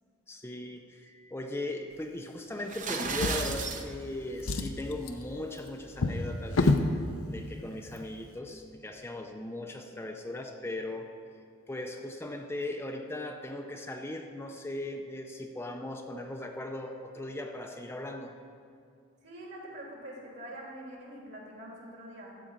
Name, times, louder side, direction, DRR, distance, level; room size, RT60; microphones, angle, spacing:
voice 1, 0.3-6.7 7.3-11.1 11.7-18.3, left 1 dB, 10° left, 3 dB, 0.5 m, -38 dB
sound 1, 2.6-3.9, right 4 dB, 40° right, 0.8 m, -33 dB
Drawer open or close, 3.0-4.0 4.3-6.9 7.8-8.0 8.4-8.5, left 2 dB, 75° left, 0.7 m, -30 dB
voice 2, 19.2-22.3, right 1 dB, 55° right, -2 dB, 2.9 m, -44 dB
13.5 x 5.0 x 8.7 m, 2.3 s
head